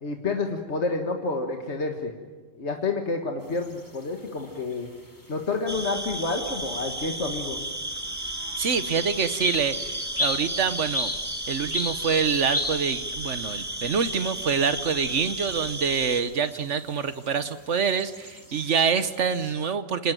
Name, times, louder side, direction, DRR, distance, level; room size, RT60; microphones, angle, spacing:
voice 1, 0.0-2.1 2.6-4.9 5.3-7.6, left 3 dB, 40° left, 3 dB, 1.8 m, -29 dB
sound 1, 3.4-19.5, left 1 dB, 10° left, 2.7 m, -37 dB
sound 2, 5.7-16.2, right 1 dB, 10° right, 1.7 m, -34 dB
voice 2, 8.6-11.1 11.5-20.1, right 6 dB, 50° right, 12 dB, 1.1 m, -26 dB
27.5 x 19.0 x 9.1 m, 1.4 s
omnidirectional pair, 1.9 m